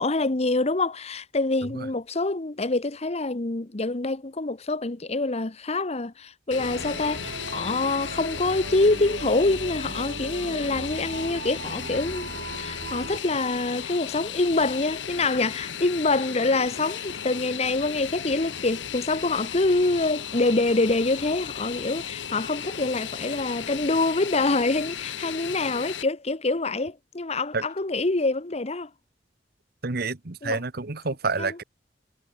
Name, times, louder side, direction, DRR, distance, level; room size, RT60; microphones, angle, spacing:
voice 1, 0.0-12.3 12.6-28.9 30.4-30.6 31.4-31.6, left 2 dB, 35° left, 1.1 m, -25 dB
Fixed-wing aircraft airplane, 6.5-26.0, left 8 dB, 80° left, 0.9 m, -36 dB
sound 1, 6.6-13.2, right 2 dB, 85° right, 7.3 m, -38 dB
voice 2, 29.8-31.6, right 4 dB, 55° right, 1.3 m, -28 dB
head